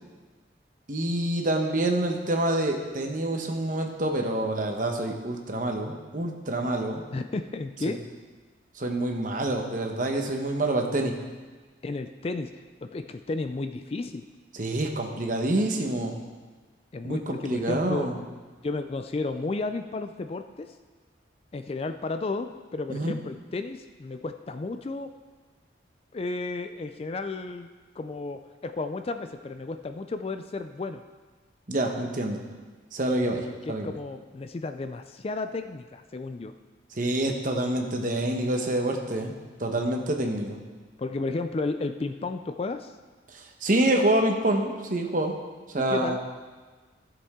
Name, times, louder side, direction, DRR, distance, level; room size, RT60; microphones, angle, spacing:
voice 1, 0.9-7.0 7.9-8.0 8.7-11.1 14.5-16.2 17.0-18.2 22.9-23.1 31.7-32.4 32.9-34.0 36.9-39.3 39.6-40.6 43.3-45.3 45.7-46.2, right 1 dB, 45° right, 3 dB, 1.1 m, -27 dB
voice 2, 7.1-8.0 11.8-12.5 12.8-14.2 16.9-18.1 18.6-20.7 21.5-25.1 26.1-27.7 28.0-31.0 33.5-36.5 41.0-42.9 45.8-46.2, left 3 dB, 30° left, 8 dB, 0.3 m, -33 dB
15.0 x 7.0 x 3.7 m, 1.4 s
head